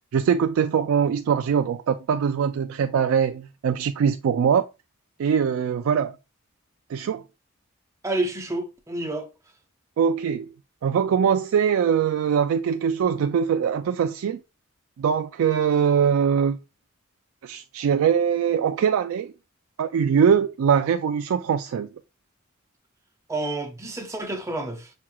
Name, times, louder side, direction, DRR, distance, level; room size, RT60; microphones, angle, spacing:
voice 1, 0.1-4.7 5.2-6.1 6.9-7.2 10.0-10.5 10.8-14.4 15.0-16.6 17.4-19.3 19.8-21.9, right 7 dB, 80° right, 0.3 m, -22 dB
voice 2, 8.0-9.3 23.3-24.9, right 2 dB, 15° right, 0.6 m, -29 dB
5.9 x 3.0 x 2.3 m
head